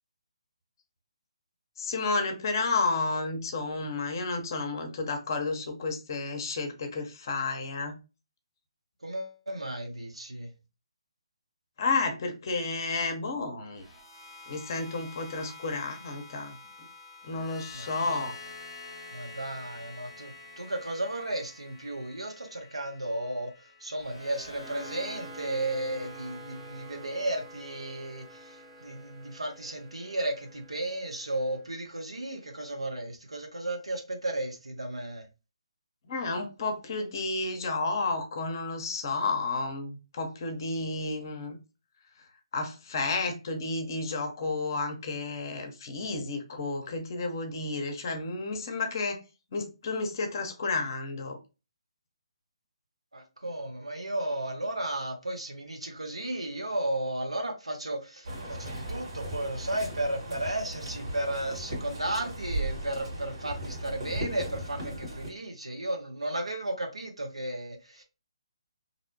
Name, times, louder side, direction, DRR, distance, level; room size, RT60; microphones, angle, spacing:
voice 1, 1.8-8.0 11.8-13.8 14.5-16.6 17.2-18.4 36.1-41.6 42.5-49.2 49.5-51.4, left 3 dB, 40° left, 0.6 m, -31 dB
voice 2, 9.0-10.5 17.7-18.3 19.1-35.3 53.1-68.0, right 1 dB, 80° right, 0.7 m, -34 dB
sound 1, 13.7-31.9, left 1 dB, 5° right, 0.5 m, -48 dB
sound 2, 58.2-65.3, right 1 dB, 60° right, 1.4 m, -37 dB
2.6 x 2.1 x 2.6 m
figure-of-eight pair, 140°, 3 cm